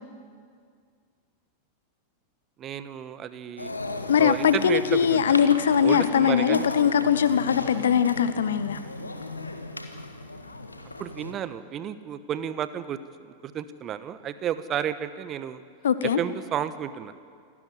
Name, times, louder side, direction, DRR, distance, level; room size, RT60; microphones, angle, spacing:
voice 1, 2.6-3.7 4.2-5.2 5.8-6.7 11.0-15.6 16.0-17.1, right 9 dB, 30° right, 13 dB, 1.1 m, -32 dB
sound 1, 3.6-11.3, left 2 dB, 80° left, 1.6 m, -36 dB
voice 2, 4.1-8.8 15.8-16.2, left 8 dB, 65° left, 13 dB, 1.1 m, -21 dB
28.0 x 12.5 x 9.7 m, 2.1 s
figure-of-eight pair, 90°, 0 cm